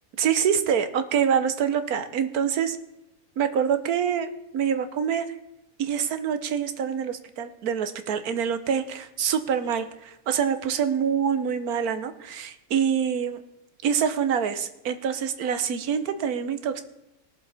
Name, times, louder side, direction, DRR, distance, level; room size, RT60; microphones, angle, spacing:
voice 1, 0.2-2.8 3.4-5.3 5.8-13.4 13.8-16.8, right 7 dB, 75° right, 10 dB, 1.4 m, -26 dB
21.0 x 7.1 x 4.2 m, 0.90 s
omnidirectional pair, 1.6 m